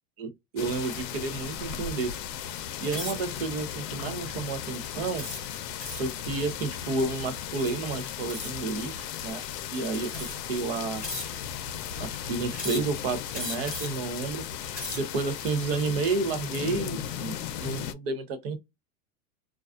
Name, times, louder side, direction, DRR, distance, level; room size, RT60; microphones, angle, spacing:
voice 1, 0.2-2.1 2.8-5.3 6.0-9.4 9.7-11.0 12.0-14.4 14.9-18.6, right 4 dB, 40° right, 0.5 m, -31 dB
sound 1, 0.6-17.9, left 9 dB, 90° left, 0.6 m, -36 dB
sound 2, 2.9-3.3 4.0-4.2 5.2-6.2 8.3-8.7 9.5-9.6 10.1-10.6 11.0-11.6 12.5-13.0 13.3-14.1 14.6-15.2, left 1 dB, 5° right, 0.8 m, -37 dB
2.4 x 2.3 x 2.3 m
supercardioid pair, 175°, 48 cm